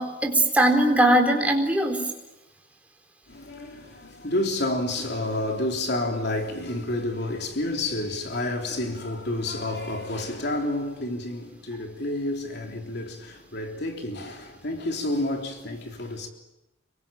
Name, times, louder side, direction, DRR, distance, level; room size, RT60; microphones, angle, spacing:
voice 1, 0.0-2.0, right 1 dB, 10° right, 4.0 m, -20 dB
voice 2, 3.3-16.3, left 1 dB, 60° left, 3.4 m, -29 dB
26.5 x 23.5 x 9.0 m
head